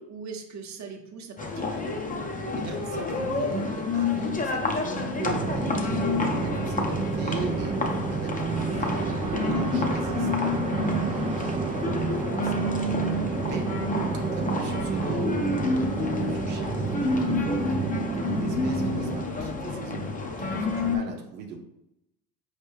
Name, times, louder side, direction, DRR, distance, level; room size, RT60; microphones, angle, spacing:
voice 1, 0.0-2.0 13.5-13.9, right 5 dB, 35° right, 3 dB, 0.9 m, -41 dB
sound 1, 1.4-21.0, left 3 dB, 15° left, 0.7 m, -29 dB
voice 2, 2.6-12.6 13.4-13.7 14.1-17.6 18.1-20.1 20.4-21.6, right 4 dB, 90° right, 1 dB, 0.8 m, -39 dB
sound 2, 5.2-19.2, right 5 dB, 15° right, 0.3 m, -30 dB
4.3 x 3.2 x 3.3 m, 0.84 s
supercardioid pair, 75°, 46 cm